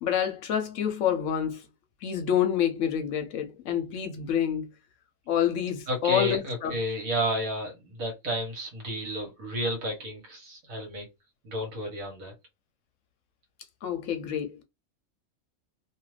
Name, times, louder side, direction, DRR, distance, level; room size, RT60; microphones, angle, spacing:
voice 1, 0.0-1.6 2.0-4.7 5.3-6.7 13.8-14.6, left 9 dB, 70° left, 0.9 m, -27 dB
voice 2, 5.9-11.1 11.4-12.3, right 1 dB, 75° right, 1.5 m, -31 dB
2.7 x 2.4 x 3.1 m
omnidirectional pair, 1.5 m